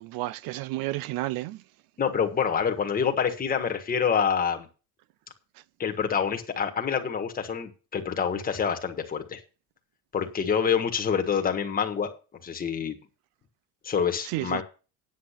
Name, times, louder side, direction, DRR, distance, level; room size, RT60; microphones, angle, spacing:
voice 1, 0.0-1.6 14.3-14.6, right 18 dB, 75° right, 0.6 m, -31 dB
voice 2, 2.0-4.7 5.8-9.4 10.1-12.1 12.4-13.0 13.8-14.6, left 7 dB, 25° left, 1.5 m, -27 dB
9.3 x 8.4 x 5.8 m
cardioid pair, 155°, 35 cm